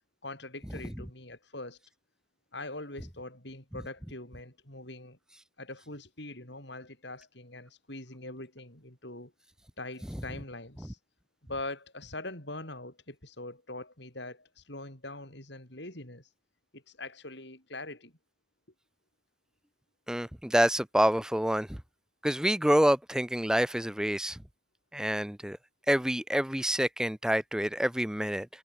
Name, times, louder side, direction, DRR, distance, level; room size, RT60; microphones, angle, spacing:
voice 1, 0.2-1.8 2.5-5.2 5.6-9.3 9.8-11.0 11.5-16.3 16.7-18.1, left 2 dB, 60° left, 6.7 m, -42 dB
voice 2, 20.1-21.8 22.2-24.4 24.9-25.6 25.9-28.5, equal, 5° right, 0.5 m, -27 dB
head